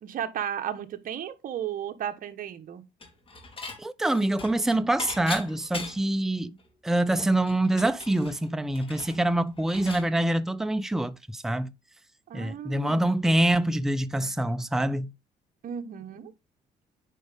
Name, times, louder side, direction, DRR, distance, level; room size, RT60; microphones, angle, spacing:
voice 1, 0.0-2.8 12.3-13.1 15.6-16.3, right 9 dB, 55° right, 1.3 m, -34 dB
Dishes pots and pans / Chink clink, 3.0-3.8 4.1-6.2 6.6-6.7 7.0-10.1, left 3 dB, 30° left, 3.4 m, -39 dB
voice 2, 3.8-6.6 6.8-11.7 12.3-15.1, right 1 dB, ahead, 0.5 m, -25 dB
9.1 x 5.0 x 3.5 m
cardioid pair, 110°, 17 cm